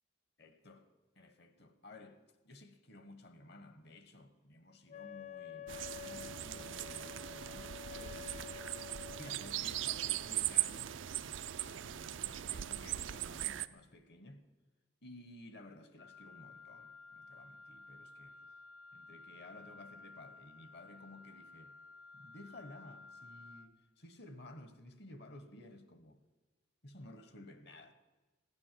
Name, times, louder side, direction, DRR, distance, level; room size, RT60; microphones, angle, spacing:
voice 1, 0.4-0.9 1.2-8.6 9.0-14.4 15.0-18.6 18.9-21.8 22.1-26.2 26.8-27.9, left 1 dB, 60° left, 1.2 m, -55 dB
Wind instrument woodwind instrument, 4.9-9.4, left 11 dB, 35° left, 0.4 m, -49 dB
sound 1, 5.7-13.7, right 12 dB, 85° right, 0.5 m, -39 dB
Wind instrument woodwind instrument 2, 16.0-23.7, left 3 dB, 85° left, 0.7 m, -55 dB
16.0 x 9.7 x 7.5 m
head